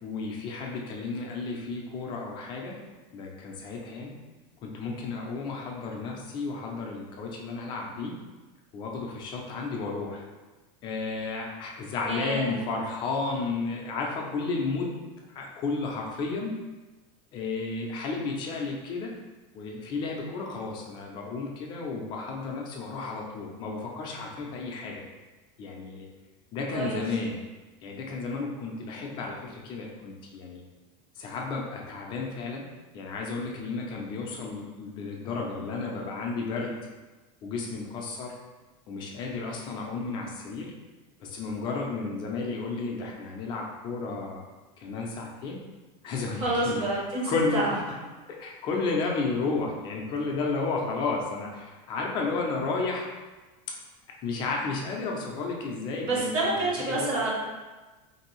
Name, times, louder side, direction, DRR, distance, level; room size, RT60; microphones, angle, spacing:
voice 1, 0.0-2.8 3.1-4.1 4.6-8.2 8.7-10.2 10.8-14.9 15.3-16.5 17.3-19.1 19.5-25.0 25.6-26.1 26.5-27.4 27.8-30.6 31.2-32.7 32.9-36.8 37.4-38.3 38.9-40.7 41.2-44.4 44.8-45.6 46.0-46.8 47.3-48.0 48.3-53.1 54.2-57.1, left 3 dB, 25° left, -1 dB, 0.4 m, -32 dB
voice 2, 12.1-12.5 26.7-27.0 46.4-47.7 56.0-57.3, right 2 dB, 30° right, -4 dB, 0.7 m, -28 dB
2.6 x 2.6 x 3.0 m, 1.2 s
supercardioid pair, 170°, 18 cm